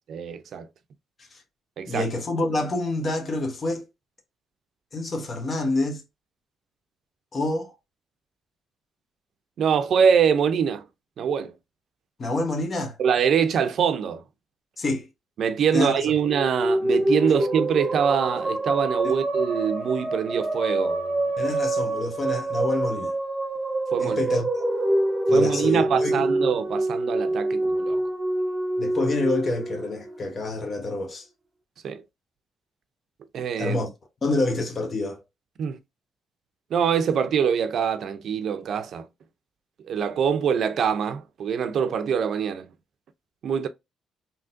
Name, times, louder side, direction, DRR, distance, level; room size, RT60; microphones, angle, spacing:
voice 1, 0.1-0.7 1.8-2.1 9.6-10.8 11.2-11.5 13.0-14.2 15.4-21.5 23.9-24.2 25.3-28.0 31.8-32.0 33.3-33.8 35.6-35.8 36.7-39.1 39.9-42.7 43.4-43.7, right 7 dB, 65° right, 0.5 m, -24 dB
voice 2, 1.9-3.8 4.9-6.0 7.3-7.7 12.2-13.0 14.8-15.1 15.7-16.0 19.0-19.2 21.4-23.1 24.0-24.6 25.3-26.2 28.8-31.2 33.6-33.9 34.2-35.2, left 2 dB, 40° left, 1.2 m, -27 dB
sound 1, 16.2-30.7, right 1 dB, 20° right, 0.8 m, -26 dB
3.6 x 2.9 x 2.6 m
cardioid pair, 90°, 0 cm